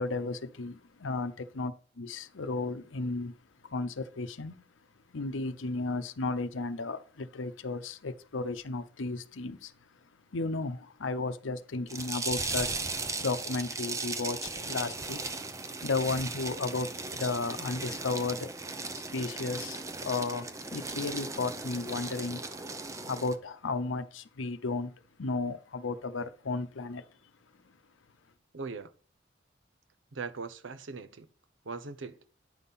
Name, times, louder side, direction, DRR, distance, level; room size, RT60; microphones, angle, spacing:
voice 1, 0.0-3.4 3.6-4.7 5.1-9.7 10.0-12.7 13.2-15.2 15.8-18.5 18.9-22.5 23.0-27.0, left 3 dB, 85° left, 0.7 m, -34 dB
sound 1, 11.9-23.4, right 3 dB, 15° right, 0.6 m, -37 dB
voice 2, 28.5-28.9 30.1-31.3 31.6-32.2, right 4 dB, 80° right, 0.8 m, -40 dB
9.4 x 5.7 x 4.1 m
head